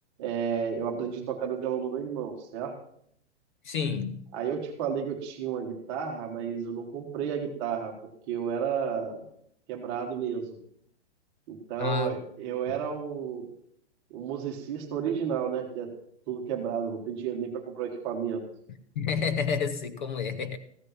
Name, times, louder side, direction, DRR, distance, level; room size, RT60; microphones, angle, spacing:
voice 1, 0.2-2.7 4.3-7.9 8.3-9.2 9.7-10.4 11.5-13.4 14.1-15.9 16.3-18.4, right 7 dB, 25° right, 2 dB, 1.4 m, -32 dB
voice 2, 3.6-4.3 11.8-12.2 19.0-20.6, left 6 dB, 45° left, 11 dB, 0.8 m, -29 dB
15.0 x 6.6 x 5.8 m, 0.67 s
hypercardioid pair, 170°, 35 cm